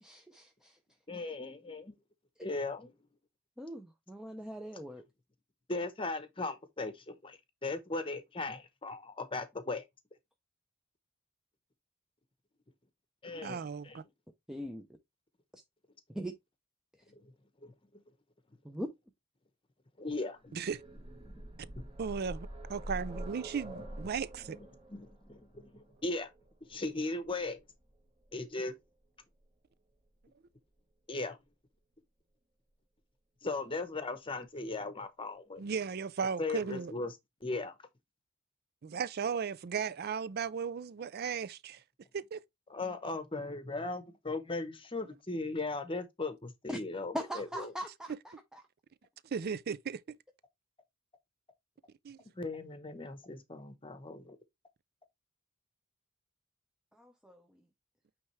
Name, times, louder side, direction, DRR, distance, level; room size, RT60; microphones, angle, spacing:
voice 1, 0.0-0.8 3.6-5.0 14.5-14.9 15.5-15.6 16.1-16.4 18.6-18.9 46.7-46.8 47.1-48.6 56.9-57.5, equal, 5° right, 0.6 m, -41 dB
voice 2, 1.1-1.9 2.4-2.9 5.7-9.8 13.2-13.6 13.8-14.0 17.1-17.2 17.6-17.7 20.0-20.6 21.8-21.9 24.9-26.3 26.7-27.6 28.3-28.7 31.1-31.4 33.4-35.6 36.4-37.2 37.4-37.7 42.7-47.7 52.4-54.4, left 3 dB, 25° left, 0.9 m, -38 dB
voice 3, 13.4-14.0 20.5-20.8 22.0-24.6 35.6-36.9 38.8-41.8 42.1-42.4 49.3-50.2 52.0-52.2, right 6 dB, 45° right, 0.4 m, -36 dB
sound 1, 20.5-28.3 29.4-29.5 29.9-30.0, right 1 dB, 25° right, 1.4 m, -46 dB
8.6 x 3.4 x 3.2 m
head